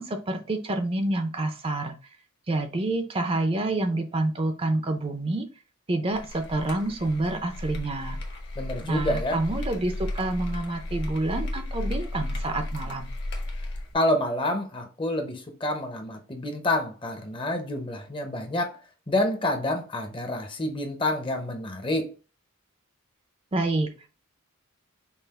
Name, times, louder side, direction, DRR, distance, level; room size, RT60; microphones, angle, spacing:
voice 1, 0.0-1.9 2.5-5.5 5.9-8.2 8.8-13.1 23.5-23.9, right 2 dB, 25° right, 0.5 m, -28 dB
sound 1, 6.1-13.9, left 1 dB, 55° left, 1.1 m, -34 dB
voice 2, 8.6-9.4 13.9-18.8 19.1-22.1, left 1 dB, 25° left, 0.7 m, -28 dB
5.5 x 2.4 x 3.5 m
head